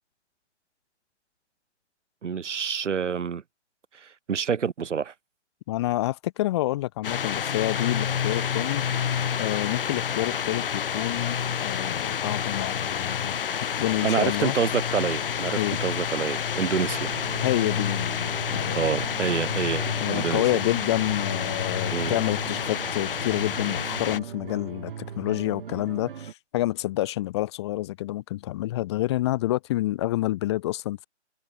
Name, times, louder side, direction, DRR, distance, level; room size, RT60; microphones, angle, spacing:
voice 1, 2.2-3.4 3.9-5.1 14.0-17.1 18.7-20.4 21.9-22.2, right 7 dB, 85° right, 1.4 m, -27 dB
voice 2, 5.7-9.1 9.4-13.4 13.7-14.5 15.5-15.8 17.4-18.8 20.0-31.1, left 16 dB, 25° left, 2.3 m, -28 dB
sound 1, 7.0-24.2, left 8 dB, 50° left, 4.4 m, -29 dB
sound 2, 16.6-26.3, right 8 dB, 50° right, 2.6 m, -40 dB
hypercardioid pair, 165°, 35 cm